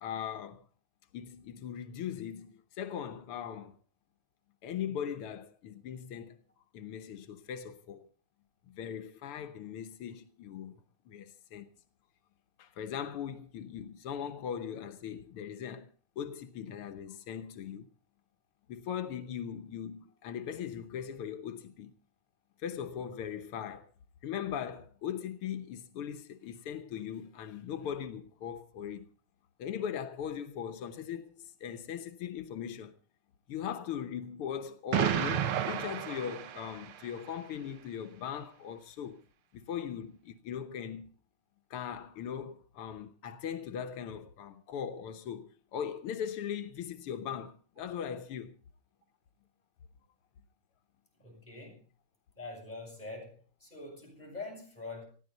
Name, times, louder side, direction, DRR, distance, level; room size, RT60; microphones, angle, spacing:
voice 1, 0.0-0.7 1.1-3.8 4.6-6.4 6.7-8.1 8.7-11.7 12.6-17.9 18.7-21.9 22.6-23.9 24.2-29.1 29.6-32.9 33.5-39.2 39.5-41.1 41.7-48.6, left 8 dB, 90° left, 1.9 m, -39 dB
Explosion, 34.9-37.1, right 10 dB, 75° right, 1.9 m, -31 dB
voice 2, 51.2-51.8 52.4-55.1, left 3 dB, 20° left, 7.7 m, -44 dB
19.5 x 15.0 x 4.0 m
omnidirectional pair, 2.4 m